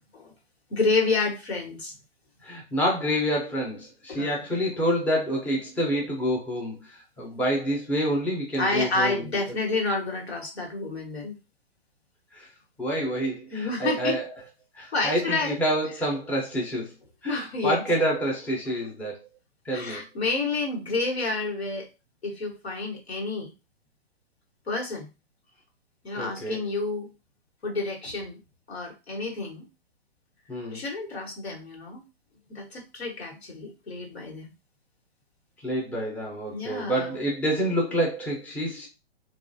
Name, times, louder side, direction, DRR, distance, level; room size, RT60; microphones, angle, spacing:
voice 1, 0.7-1.9 4.1-4.3 7.2-7.3 8.6-11.4 13.5-14.2 14.9-15.6 17.2-17.8 19.7-21.9 22.2-23.5 24.7-25.1 26.0-27.1 27.6-28.4 28.7-29.7 30.7-32.0 32.5-34.5 36.5-37.2, left 3 dB, 85° left, 0 dB, 1.3 m, -29 dB
voice 2, 2.4-9.2 12.3-12.5 12.8-14.2 14.8-16.9 17.2-19.2 19.7-20.0 26.1-26.6 30.5-30.8 35.6-38.9, equal, 5° left, -2 dB, 0.5 m, -27 dB
3.1 x 2.4 x 2.6 m, 0.27 s
hypercardioid pair, 125°, 31 cm